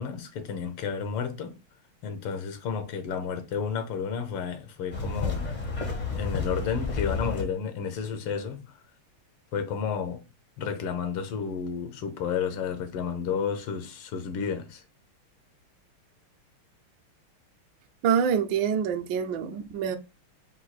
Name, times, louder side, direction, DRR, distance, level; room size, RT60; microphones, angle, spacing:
voice 1, 0.0-1.5 2.0-5.5 6.1-8.6 9.5-10.2 10.6-14.6, left 6 dB, 90° left, 1.8 m, -31 dB
sound 1, 4.9-7.4, left 4 dB, 55° left, 0.4 m, -30 dB
voice 2, 18.0-20.0, right 7 dB, 70° right, 1.2 m, -26 dB
4.6 x 2.4 x 4.1 m
omnidirectional pair, 2.4 m